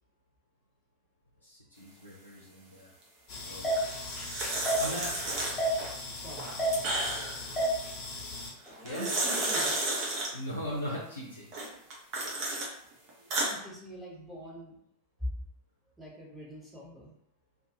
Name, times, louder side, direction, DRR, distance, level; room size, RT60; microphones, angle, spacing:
voice 1, 1.4-2.9 3.4-3.7 4.8-5.2 8.8-9.1 10.3-11.5, equal, 85° left, -7 dB, 0.6 m, -38 dB
sound 1, 3.3-8.5, equal, 35° left, 1.0 m, -33 dB
sound 2, 3.8-5.9 6.3-7.4 8.6-10.3 11.5-12.7 13.1-13.5, right 2 dB, 40° right, 0.8 m, -32 dB
voice 2, 8.6-9.9 10.6-10.8 13.5-14.8 15.2-15.3 16.0-17.1, equal, 5° right, -5 dB, 1.0 m, -42 dB
2.5 x 2.3 x 2.8 m, 0.72 s
figure-of-eight pair, 90°, 0 cm